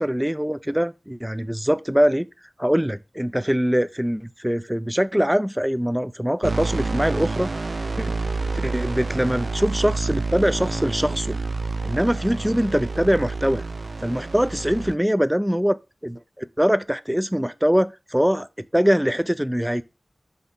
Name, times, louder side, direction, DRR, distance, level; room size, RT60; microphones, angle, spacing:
voice 1, 0.0-2.3 2.6-7.5 8.0-8.1 8.6-11.4 11.8-13.6 14.0-19.8, equal, 5° right, 0.4 m, -23 dB
sound 1, 6.4-14.9, right 3 dB, 65° right, 0.5 m, -28 dB
5.6 x 3.4 x 5.6 m
wide cardioid pair, 60°, 0 cm